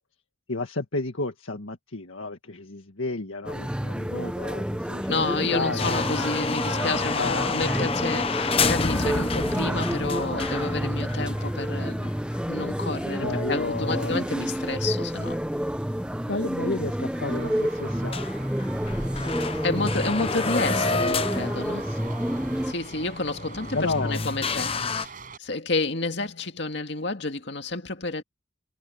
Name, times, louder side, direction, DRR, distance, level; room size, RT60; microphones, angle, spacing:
voice 1, 0.5-6.0 7.2-7.6 13.2-14.2 16.3-18.5 19.2-19.8 20.0-20.8 21.7-22.1 23.7-24.2 24.8-24.9, left 3 dB, 85° left, 1.8 m, -32 dB
sound 1, 3.5-22.7, equal, 5° right, 1.0 m, -29 dB
voice 2, 5.1-12.1 12.5-15.4 19.6-21.9 22.6-23.8 24.0-25.1 25.4-28.2, left 3 dB, 60° left, 2.2 m, -30 dB
sound 2, 5.8-14.0 14.2-14.3 14.9-15.0 15.9-16.0 16.2-16.3 16.8-16.9 17.2-17.6 17.9-18.0 18.1-25.1, left 4 dB, 30° left, 0.8 m, -30 dB
Traffic noise roadway noise, 17.1-25.4, right 4 dB, 45° right, 5.5 m, -45 dB
head